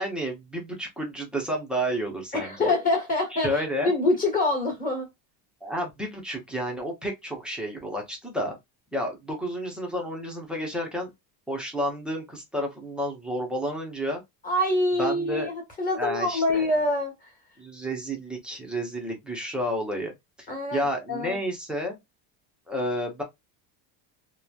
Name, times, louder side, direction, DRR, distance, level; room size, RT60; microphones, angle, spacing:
voice 1, 0.0-2.7 3.4-3.9 5.6-8.6 8.9-11.1 11.5-14.2 15.0-15.5 16.0-16.7 17.6-22.0 22.7-23.2, equal, ahead, 0.6 m, -31 dB
voice 2, 2.3-5.1 14.4-17.3 20.5-21.4, left 2 dB, 15° left, 1.3 m, -25 dB
3.0 x 2.2 x 2.3 m
cardioid pair, 145°, 49 cm